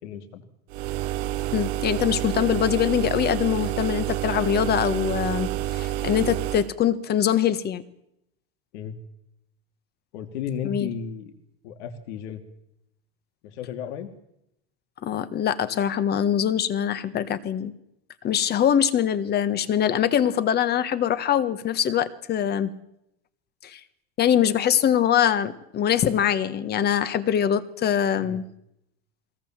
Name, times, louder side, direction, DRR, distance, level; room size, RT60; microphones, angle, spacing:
voice 1, 0.0-0.4 8.7-9.0 10.1-11.3 11.6-12.4 13.4-14.1 28.1-28.4, left 8 dB, 80° left, 6 dB, 2.8 m, -34 dB
sound 1, 0.7-6.7, right 14 dB, 65° right, 0.9 m, -28 dB
voice 2, 1.5-7.8 10.6-10.9 15.0-17.7 18.2-22.7 23.6-23.8 24.2-28.4, left 9 dB, 30° left, 13 dB, 1.4 m, -23 dB
23.0 x 17.5 x 7.5 m, 0.80 s
supercardioid pair, 150°, 34 cm